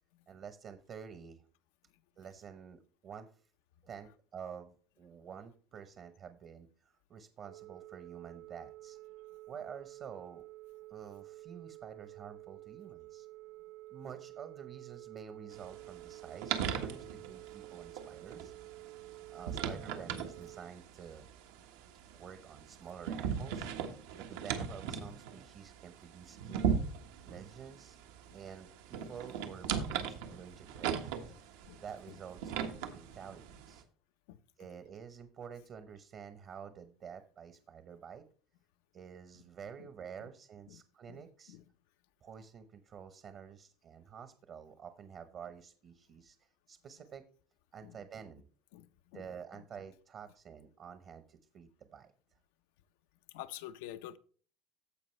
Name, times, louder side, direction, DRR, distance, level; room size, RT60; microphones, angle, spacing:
voice 1, 0.3-1.4 2.2-3.3 3.8-9.0 9.5-10.4 10.9-13.3 13.9-18.5 19.3-21.2 22.1-23.7 24.2-26.9 27.2-28.0 28.3-33.8 34.6-38.2 38.9-41.6 42.2-47.2 47.7-48.5 49.1-52.1, right 7 dB, 35° right, 0.8 m, -49 dB
Telephone, 7.4-20.6, right 18 dB, 70° right, 1.6 m, -51 dB
sound 1, 15.5-33.8, right 7 dB, 85° right, 1.3 m, -39 dB
voice 2, 48.7-49.2 53.3-54.2, left 13 dB, 85° left, 0.6 m, -47 dB
15.0 x 5.0 x 3.2 m
cardioid pair, 150°, 0 cm